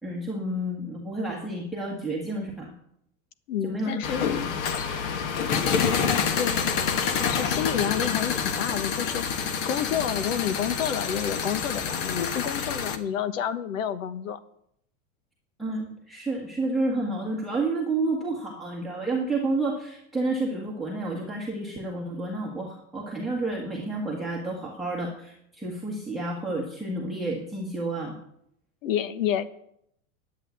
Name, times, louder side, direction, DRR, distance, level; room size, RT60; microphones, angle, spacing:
voice 1, 0.0-2.7 3.6-4.5 15.6-28.2, right 2 dB, ahead, -1 dB, 1.4 m, -30 dB
voice 2, 3.5-4.4 6.3-6.7 7.2-9.4 9.7-14.4 28.8-29.4, left 9 dB, 80° left, 13 dB, 1.3 m, -29 dB
sound 1, 4.0-13.0, left 6 dB, 40° left, 1.4 m, -27 dB
11.0 x 8.4 x 9.3 m, 0.73 s
supercardioid pair, 170°, 39 cm